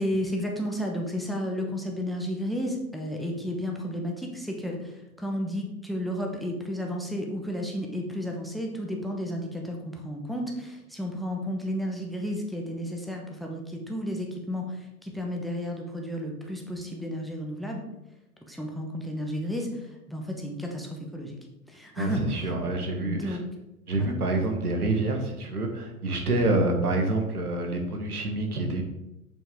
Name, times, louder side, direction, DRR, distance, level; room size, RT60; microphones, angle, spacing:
voice 1, 0.0-17.8 18.5-21.4 21.7-22.2 23.0-23.4 24.0-24.1, equal, ahead, 1 dB, 1.0 m, -32 dB
voice 2, 22.0-23.4 23.9-28.8, right 2 dB, 80° right, 3 dB, 1.5 m, -27 dB
7.1 x 5.4 x 3.5 m, 0.92 s
figure-of-eight pair, 100°, 44 cm